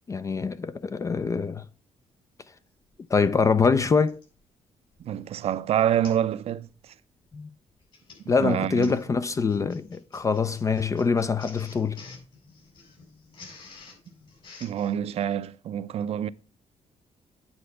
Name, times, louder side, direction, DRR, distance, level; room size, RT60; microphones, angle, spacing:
voice 1, 0.1-1.6 3.1-4.2 7.3-7.5 8.3-12.0, left 5 dB, 25° left, 0.4 m, -24 dB
Printer, 2.9-3.0 4.1-4.4 4.9-5.2 5.4-5.5 6.0-6.3 6.6-6.9 7.7-14.9, left 4 dB, 45° left, 4.8 m, -49 dB
voice 2, 5.0-6.9 8.4-9.0 14.6-16.3, right 10 dB, 60° right, 0.5 m, -27 dB
8.7 x 4.3 x 6.7 m
cardioid pair, 130°, 12 cm